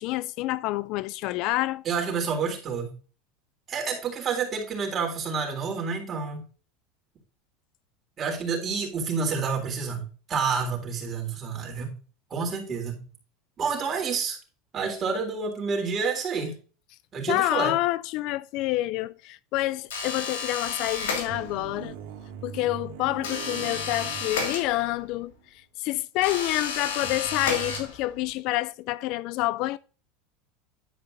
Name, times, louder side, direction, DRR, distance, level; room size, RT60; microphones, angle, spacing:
voice 1, 0.0-1.8 17.3-21.9 22.4-25.3 25.8-29.8, left 17 dB, 60° left, 0.4 m, -28 dB
voice 2, 1.8-2.9 3.7-6.4 8.2-10.0 10.3-12.0 12.3-13.0 13.6-14.4 14.7-16.5 17.1-17.7, right 5 dB, 30° right, 3.6 m, -29 dB
sound 1, 19.9-21.7 23.2-25.1 26.2-28.3, left 5 dB, 90° left, 2.8 m, -32 dB
sound 2, 21.3-25.0 25.3-25.4 27.0-27.9, right 9 dB, 75° right, 1.9 m, -41 dB
11.0 x 5.0 x 3.9 m
supercardioid pair, 125°, 0 cm